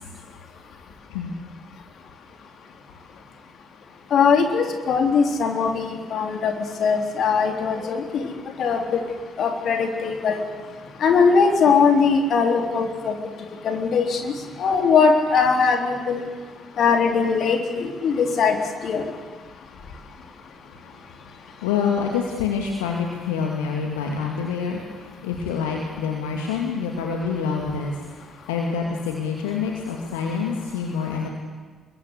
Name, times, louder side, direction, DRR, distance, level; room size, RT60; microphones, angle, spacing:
voice 1, 4.1-6.5 6.8-8.3 8.6-9.0 9.4-10.4 11.0-13.1 13.6-16.2 16.8-18.6 18.8-19.1, left 5 dB, 50° left, 3 dB, 3.7 m, -20 dB
voice 2, 21.6-31.3, left 6 dB, 70° left, 1 dB, 2.3 m, -27 dB
27.0 x 22.0 x 8.4 m, 1.5 s
figure-of-eight pair, 45°, 0 cm